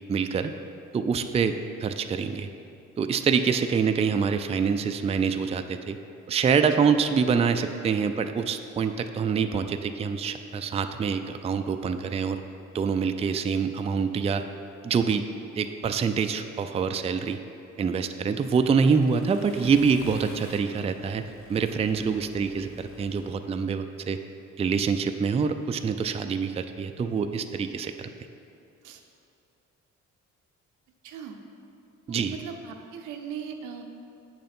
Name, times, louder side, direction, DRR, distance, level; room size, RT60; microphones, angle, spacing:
voice 1, 0.1-0.5 0.9-2.5 3.0-6.0 6.3-12.4 12.7-14.4 14.8-15.3 15.6-17.4 17.8-24.2 24.6-28.1 32.1-32.4, right 6 dB, 20° right, 8 dB, 0.3 m, -25 dB
Accelerating revving vroom, 18.0-23.3, left 2 dB, 45° left, 1.0 m, -49 dB
voice 2, 31.0-31.4 32.1-33.8, right 7 dB, 90° right, 4 dB, 0.8 m, -39 dB
7.8 x 6.5 x 4.3 m, 2.7 s
cardioid pair, 90°, 30 cm